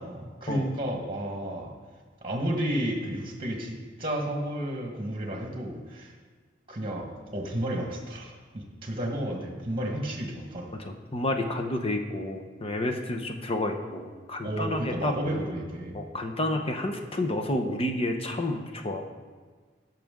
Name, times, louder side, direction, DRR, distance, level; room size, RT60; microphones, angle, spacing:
voice 1, 0.0-1.7 2.2-6.1 6.7-10.7 14.4-16.0, right 1 dB, 30° right, 2 dB, 1.4 m, -32 dB
voice 2, 10.8-15.1 15.9-19.0, left 1 dB, 30° left, 4 dB, 0.9 m, -30 dB
15.5 x 6.0 x 3.7 m, 1.5 s
head